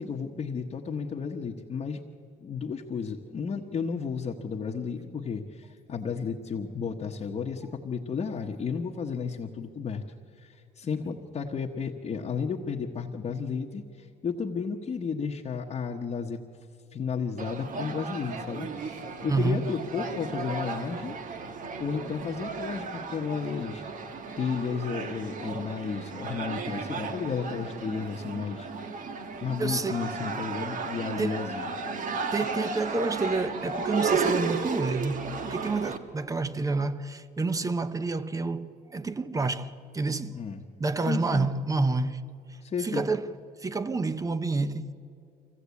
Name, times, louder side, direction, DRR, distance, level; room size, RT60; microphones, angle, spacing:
voice 1, 0.0-2.0 2.4-10.0 10.4-16.4 16.9-21.1 21.8-23.8 24.4-28.7 29.4-31.7 40.3-40.6 41.1-41.5 42.6-43.0, left 5 dB, 35° left, 1.2 m, -33 dB
sound 1, 17.4-36.0, right 4 dB, 50° right, 1.5 m, -34 dB
voice 2, 19.3-19.6 29.6-30.0 31.2-31.5 32.3-40.4 40.8-42.2 42.8-44.9, right 3 dB, 20° right, 0.9 m, -29 dB
24.5 x 16.5 x 8.4 m
cardioid pair, 110°, 17 cm